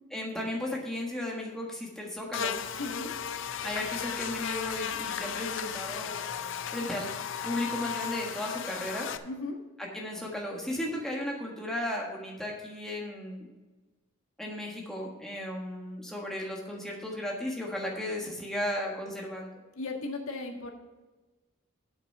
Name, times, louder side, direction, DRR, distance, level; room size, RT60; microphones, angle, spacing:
voice 1, 0.1-2.6 3.6-6.2 6.7-7.1 7.4-9.1 9.8-13.5 14.4-19.5, left 1 dB, ahead, -2 dB, 1.5 m, -35 dB
Buzz, 2.3-9.2, left 8 dB, 60° left, 0.5 m, -35 dB
voice 2, 2.8-3.1 9.2-9.6 19.7-20.7, left 3 dB, 85° left, 1 dB, 1.5 m, -36 dB
7.9 x 6.1 x 6.7 m, 1.2 s
head